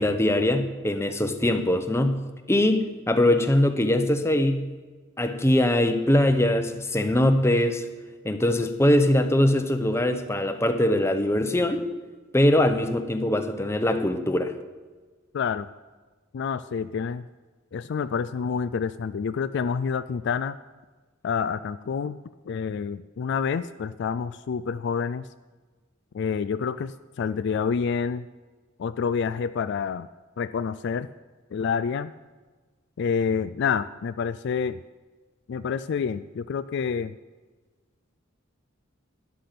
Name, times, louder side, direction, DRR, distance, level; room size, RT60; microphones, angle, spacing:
voice 1, 0.0-2.2 2.5-4.7 5.2-7.9 8.2-11.9 12.3-14.5, left 1 dB, 15° left, 7 dB, 0.8 m, -22 dB
voice 2, 15.3-15.7 16.3-17.3 17.7-20.6 21.2-22.2 22.5-25.3 26.1-28.3 28.8-30.1 30.4-31.1 31.5-32.1 33.0-34.8 35.5-37.1, left 6 dB, 60° left, 13 dB, 0.3 m, -28 dB
12.0 x 10.0 x 5.9 m, 1.3 s
head